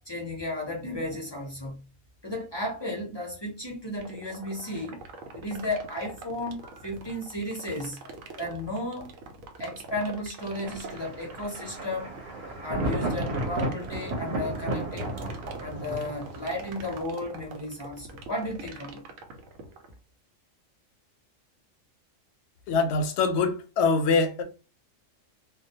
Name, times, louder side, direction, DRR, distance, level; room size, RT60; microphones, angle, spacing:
voice 1, 0.1-1.8 2.2-5.0 5.3-9.1 9.6-15.2 15.6-19.0 19.4-19.5, left 1 dB, 35° left, 0.4 m, -34 dB
sound 1, 4.0-19.9, right 4 dB, 90° right, 1.0 m, -43 dB
Thunder, 10.6-17.0, right 1 dB, 60° right, 0.9 m, -33 dB
voice 2, 22.7-24.4, left 4 dB, 65° left, 0.8 m, -24 dB
2.3 x 2.1 x 2.7 m
omnidirectional pair, 1.3 m